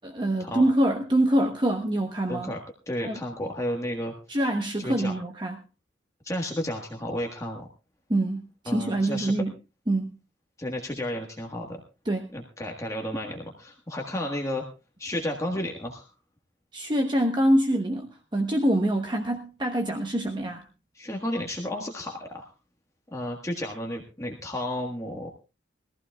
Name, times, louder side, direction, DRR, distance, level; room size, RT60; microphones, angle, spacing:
voice 1, 0.0-2.5 3.0-3.2 4.3-5.6 8.1-9.5 9.9-10.1 12.0-12.3 16.7-20.6, right 1 dB, 25° right, 3 dB, 1.0 m, -25 dB
voice 2, 2.3-2.6 2.9-4.1 4.8-5.1 6.2-7.7 8.7-9.3 10.6-11.8 12.3-14.6 15.0-16.1 20.9-22.5 23.1-25.3, left 1 dB, 15° left, 1 dB, 1.5 m, -32 dB
21.5 x 14.5 x 2.3 m, 0.30 s
head